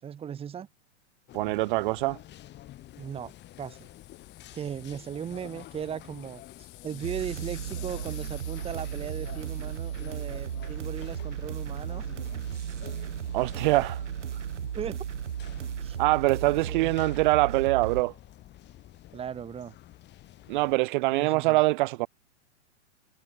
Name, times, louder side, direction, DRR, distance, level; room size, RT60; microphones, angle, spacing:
voice 1, 0.0-0.7 3.0-3.9 4.5-12.0 14.7-15.0 15.8-16.0 16.5-16.9 19.1-19.7 21.1-21.6, right 8 dB, 15° right, 1.3 m, -38 dB
sound 1, 1.3-20.8, left 14 dB, 30° left, 5.7 m, -49 dB
voice 2, 1.3-2.2 13.3-14.0 16.0-18.1 20.5-22.1, right 21 dB, 45° right, 0.7 m, -24 dB
sound 2, 2.7-12.9, left 26 dB, 50° left, 6.4 m, -53 dB
sound 3, 7.0-18.0, right 9 dB, 85° right, 1.0 m, -35 dB
hypercardioid pair, 120°, 35 cm